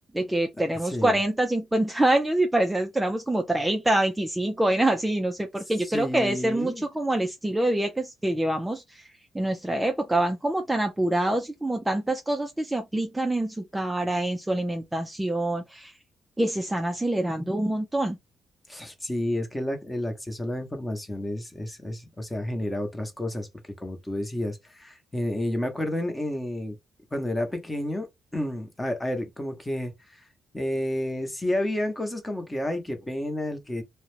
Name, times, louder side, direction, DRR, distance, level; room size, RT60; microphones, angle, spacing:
voice 1, 0.1-15.9 16.4-18.2, right 1 dB, 10° right, 0.4 m, -26 dB
voice 2, 0.8-1.2 5.9-6.8 18.7-23.5 23.8-26.8 27.1-30.2 30.5-33.8, left 1 dB, 15° left, 0.8 m, -30 dB
2.4 x 2.1 x 3.1 m
cardioid pair, 90°, 0 cm